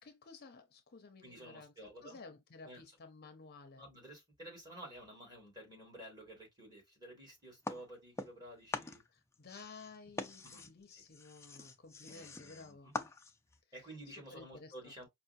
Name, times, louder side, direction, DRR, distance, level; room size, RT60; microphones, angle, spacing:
voice 1, 0.0-1.7 2.0-3.8 9.1-12.9 14.3-14.9, left 4 dB, 45° left, 0.6 m, -54 dB
voice 2, 1.2-2.2 2.6-3.0 3.7-9.0 10.4-10.7 10.9-11.0 12.1-13.0 13.7-15.1, right 1 dB, 20° right, 2.1 m, -52 dB
sound 1, 7.6-8.5 8.7-13.6, left 3 dB, 15° left, 0.4 m, -44 dB
5.4 x 2.1 x 2.6 m
head